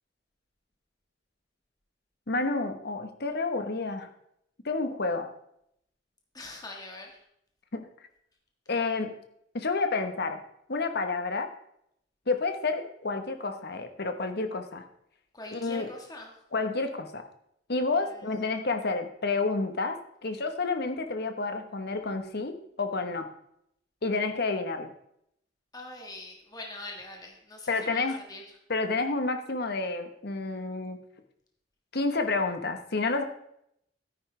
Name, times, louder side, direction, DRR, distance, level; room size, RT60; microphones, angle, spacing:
voice 1, 2.3-4.1 4.6-5.3 7.7-7.8 8.7-9.1 9.5-10.4 10.7-11.5 12.3-14.8 15.5-15.9 16.5-17.2 17.7-22.5 22.8-23.3 24.0-24.9 27.7-28.2 28.7-31.0 31.9-33.2, left 3 dB, 60° left, 7 dB, 1.2 m, -29 dB
voice 2, 6.3-7.1 15.3-16.3 25.7-28.4, left 2 dB, 20° left, 1 dB, 1.6 m, -43 dB
13.0 x 9.8 x 3.3 m, 0.74 s
head